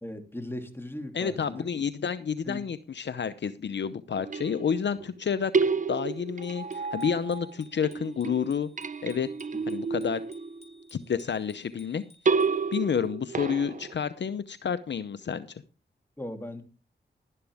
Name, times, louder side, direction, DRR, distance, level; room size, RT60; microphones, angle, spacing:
voice 1, 0.0-1.7 2.4-2.6 16.2-16.6, left 1 dB, 10° left, 4 dB, 3.0 m, -38 dB
voice 2, 1.1-8.7 9.0-9.3 9.7-10.2 10.9-12.0 12.7-15.6, left 7 dB, 65° left, 12 dB, 0.8 m, -30 dB
sound 1, 4.2-5.1 5.5-7.5 7.8-10.8 12.3-13.9, right 5 dB, 40° right, 0.6 m, -30 dB
Bicycle bell, 6.4-13.1, left 2 dB, 35° left, 4.7 m, -59 dB
12.0 x 11.0 x 3.6 m, 0.34 s
cardioid pair, 50°, 20 cm